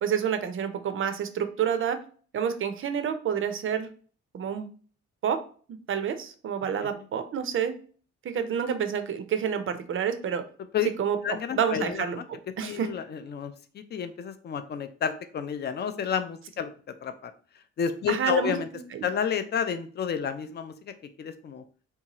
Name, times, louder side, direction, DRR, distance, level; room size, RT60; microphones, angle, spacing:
voice 1, 0.0-2.0 2.3-3.9 4.3-4.7 5.2-5.4 5.7-7.8 8.3-10.4 11.0-11.2 11.6-12.2 12.6-12.9 18.1-18.6 18.9-19.1, right 8 dB, 45° right, 9 dB, 0.5 m, -28 dB
voice 2, 11.2-12.2 12.6-16.7 17.0-17.3 17.8-18.7 19.0-20.7 21.2-21.6, left 8 dB, 35° left, 10 dB, 0.4 m, -30 dB
2.7 x 2.3 x 2.9 m, 0.42 s
cardioid pair, 90°, 30 cm